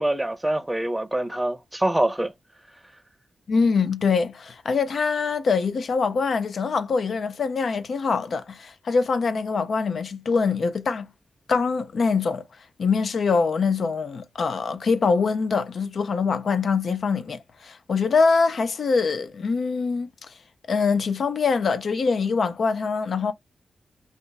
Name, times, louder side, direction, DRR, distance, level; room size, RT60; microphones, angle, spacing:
voice 1, 0.0-2.3, right 1 dB, 15° right, 0.6 m, -25 dB
voice 2, 3.5-11.1 11.5-12.4 12.8-20.1 20.7-23.3, left 4 dB, 70° left, 0.4 m, -24 dB
2.5 x 2.3 x 3.9 m
cardioid pair, 60°, 0 cm